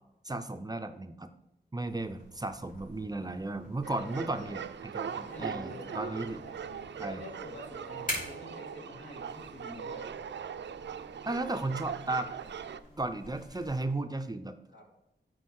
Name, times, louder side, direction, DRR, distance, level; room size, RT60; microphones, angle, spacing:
voice 1, 0.2-1.3 1.7-6.4 7.0-7.2 11.2-12.3 13.0-14.6, right 2 dB, 20° right, 8 dB, 0.5 m, -35 dB
sound 1, 1.9-13.8, left 1 dB, 50° left, 3.6 m, -47 dB
sound 2, 2.9-13.7, equal, 30° left, 1.6 m, -60 dB
sound 3, 3.8-12.8, right 7 dB, 80° right, 0.4 m, -41 dB
voice 2, 3.9-4.5 5.0-10.1 14.7-14.9, left 1 dB, 75° left, -3 dB, 3.0 m, -47 dB
8.3 x 4.5 x 6.4 m, 0.86 s
wide cardioid pair, 100°, 18 cm